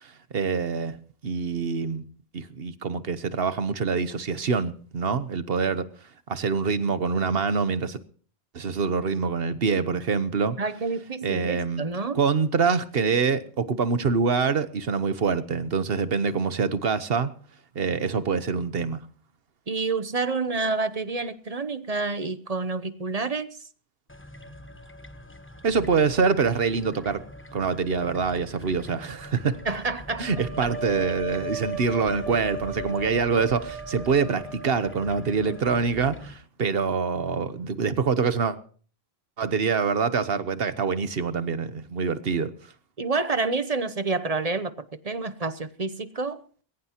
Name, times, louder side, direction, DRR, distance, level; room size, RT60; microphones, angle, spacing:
voice 1, 0.0-1.0 1.2-2.0 2.3-5.9 6.3-8.0 8.5-10.6 11.2-11.9 12.1-17.3 17.7-19.0 25.6-27.2 27.5-29.6 30.2-38.6 39.4-42.5, right 5 dB, 65° right, 1.2 m, -25 dB
voice 2, 10.6-12.2 19.7-23.5 29.6-30.7 43.0-44.7 45.0-46.4, right 3 dB, 40° right, 0.9 m, -28 dB
sound 1, 24.1-36.3, left 1 dB, 10° left, 1.1 m, -44 dB
sound 2, 30.2-36.1, right 1 dB, 90° left, 4.9 m, -36 dB
21.0 x 17.5 x 2.9 m
omnidirectional pair, 1.1 m